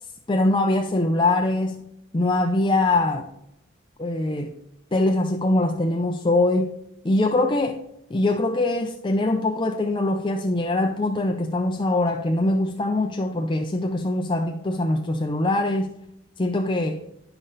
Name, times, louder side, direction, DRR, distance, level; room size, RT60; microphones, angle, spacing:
voice 1, 0.3-1.8 2.1-3.3 4.0-4.5 4.9-6.8 7.0-7.8 8.1-16.0 16.4-17.0, left 2 dB, 25° left, 0.5 m, -23 dB
10.5 x 5.7 x 3.9 m
head